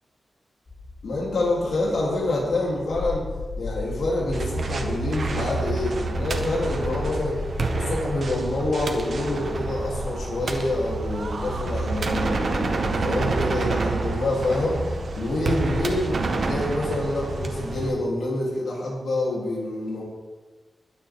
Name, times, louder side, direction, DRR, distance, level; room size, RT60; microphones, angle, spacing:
sound 1, 0.7-17.9, left 2 dB, 40° left, 4.2 m, -37 dB
voice 1, 1.0-3.3 3.6-7.4 7.7-14.8 15.1-20.0, left 2 dB, 90° left, -5 dB, 3.8 m, -27 dB
sound 2, 4.3-17.9, right 3 dB, 65° right, 1.5 m, -28 dB
21.5 x 9.8 x 3.9 m, 1.3 s
wide cardioid pair, 115°, 0 cm